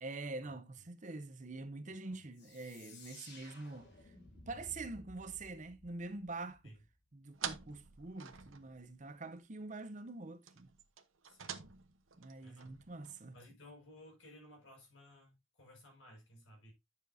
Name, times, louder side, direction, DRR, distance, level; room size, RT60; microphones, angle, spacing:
voice 1, 0.0-6.8 7.1-10.7 12.2-13.4, right 3 dB, 40° right, 0.7 m, -45 dB
sound 1, 2.3-6.9, left 2 dB, 55° left, 3.6 m, -57 dB
sound 2, 7.3-9.1 9.4-9.5 9.8-9.9 10.4-13.4, right 8 dB, 80° right, 1.0 m, -47 dB
voice 2, 11.2-11.6 12.4-12.8 13.3-16.7, left 1 dB, 70° left, 5.7 m, -57 dB
10.0 x 7.2 x 2.7 m
head